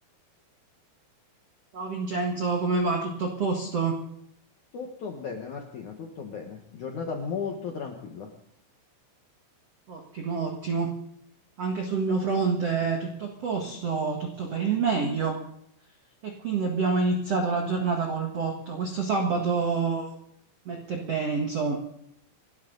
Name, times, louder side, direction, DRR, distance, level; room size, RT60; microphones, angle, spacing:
voice 1, 1.7-4.0 9.9-10.9 11.6-15.4 16.2-20.1 20.6-21.7, right 4 dB, 65° right, 2 dB, 1.5 m, -27 dB
voice 2, 4.7-8.3, left 5 dB, 65° left, 2 dB, 1.9 m, -35 dB
29.5 x 12.5 x 4.0 m, 0.69 s
omnidirectional pair, 5.5 m